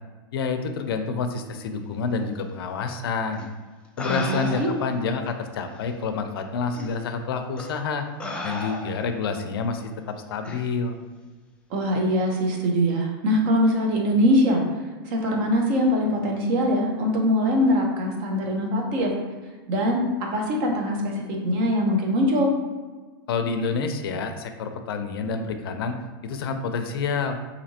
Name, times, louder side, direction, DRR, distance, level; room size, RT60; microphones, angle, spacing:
voice 1, 0.3-3.4 4.0-8.0 8.4-9.9 10.3-10.9 23.3-25.9 26.2-27.4, left 5 dB, 80° left, 7 dB, 0.4 m, -28 dB
sound 1, 3.3-3.5 4.0-4.9 5.8-5.9 6.7-6.9 7.6-7.8 8.2-9.2 10.5-10.7, left 2 dB, 10° left, 0.3 m, -34 dB
voice 2, 4.1-4.7 11.7-14.6 15.0-19.1 19.7-22.5, equal, 40° right, 1 dB, 0.7 m, -22 dB
4.2 x 2.7 x 2.8 m, 1.4 s
supercardioid pair, 150°, 12 cm